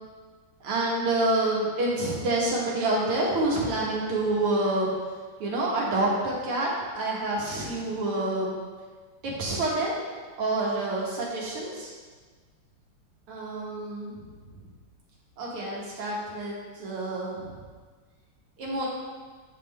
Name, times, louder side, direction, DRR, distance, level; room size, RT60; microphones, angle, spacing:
voice 1, 0.6-4.9 5.4-6.7 6.9-8.5 9.2-9.9 10.4-11.9 13.3-14.2 15.4-17.6 18.6-18.9, right 2 dB, 80° right, -4 dB, 2.2 m, -27 dB
9.1 x 3.7 x 3.3 m, 1.5 s
omnidirectional pair, 2.4 m